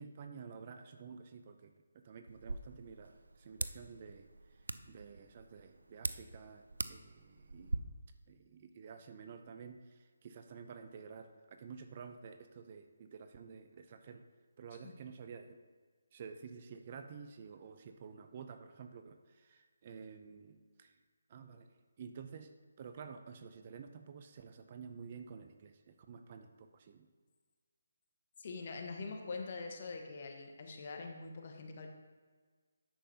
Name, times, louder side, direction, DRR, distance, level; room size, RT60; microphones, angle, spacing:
voice 1, 0.0-4.3 4.9-7.8 8.3-14.2 14.6-15.6 16.1-20.9 21.3-21.7 22.0-27.1, right 6 dB, 40° right, 7 dB, 0.6 m, -51 dB
sound 1, 2.3-7.8, right 2 dB, 85° right, 0.4 m, -43 dB
voice 2, 28.4-31.9, left 4 dB, 45° left, 3 dB, 1.2 m, -44 dB
10.0 x 7.5 x 2.8 m, 1.5 s
figure-of-eight pair, 150°, 0 cm